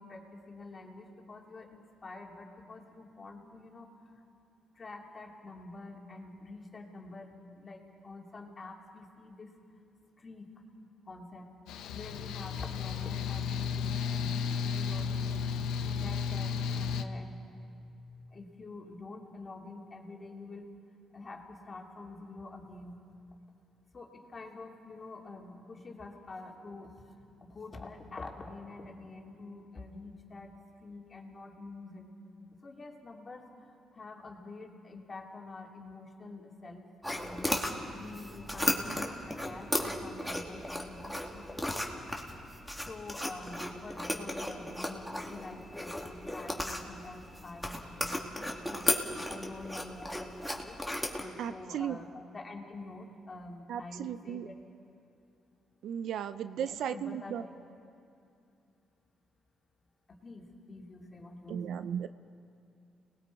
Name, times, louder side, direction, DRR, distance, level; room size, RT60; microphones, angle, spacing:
voice 1, 0.0-4.0 4.7-9.5 10.2-10.5 11.1-11.6 11.9-15.5 15.8-17.4 18.3-20.7 21.1-23.0 23.9-26.9 27.4-30.5 30.8-32.1 32.6-37.6 37.9-41.5 42.9-50.8 51.2-54.6 56.5-57.5 60.1-61.9, left 3 dB, 35° left, 0 dB, 2.8 m, -47 dB
Mechanical fan, 11.7-17.0, left 6 dB, 90° left, 0.8 m, -33 dB
sound 1, 37.0-51.2, left 1 dB, ahead, 2.4 m, -36 dB
voice 2, 51.4-52.0 53.7-54.5 55.8-57.4 61.5-62.1, right 9 dB, 75° right, 12 dB, 0.5 m, -36 dB
30.0 x 20.0 x 4.7 m, 2.5 s
cardioid pair, 90°, 0 cm